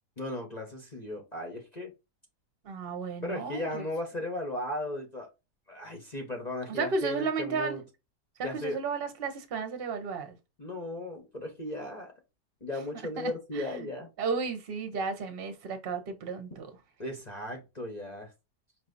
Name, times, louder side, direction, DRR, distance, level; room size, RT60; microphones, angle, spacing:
voice 1, 0.2-1.9 3.2-5.3 5.7-7.8 8.4-8.8 10.6-12.1 12.6-14.1 17.0-18.3, left 1 dB, 30° left, 0.9 m, -36 dB
voice 2, 2.6-3.8 6.7-7.8 8.4-10.4 13.2-13.9 14.2-16.7, right 4 dB, 40° right, 1.0 m, -33 dB
5.5 x 3.0 x 2.6 m
omnidirectional pair, 1.8 m